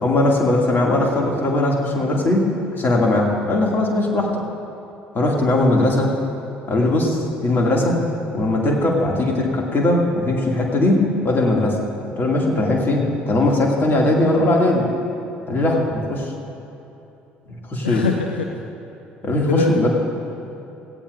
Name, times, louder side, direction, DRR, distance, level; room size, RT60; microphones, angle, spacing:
voice 1, 0.0-4.4 5.1-6.1 6.7-8.0 8.3-11.8 12.2-14.9 15.5-16.3 17.5-18.0 19.2-19.9, left 1 dB, 35° left, -1 dB, 2.6 m, -19 dB
voice 2, 17.8-18.5 19.3-19.9, left 6 dB, 85° left, 3 dB, 0.5 m, -23 dB
17.0 x 16.0 x 2.7 m, 2.9 s
figure-of-eight pair, 55°, 6 cm